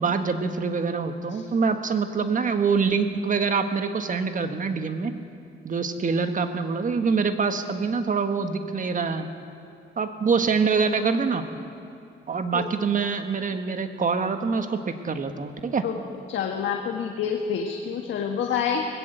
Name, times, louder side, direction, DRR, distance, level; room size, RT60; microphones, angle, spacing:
voice 1, 0.0-5.1 5.6-9.3 10.0-11.4 12.3-15.8, right 5 dB, 40° right, 7 dB, 1.6 m, -25 dB
voice 2, 16.3-18.9, left 7 dB, 70° left, 2 dB, 1.5 m, -27 dB
19.5 x 16.5 x 7.9 m, 2.5 s
cardioid pair, 90°, 20 cm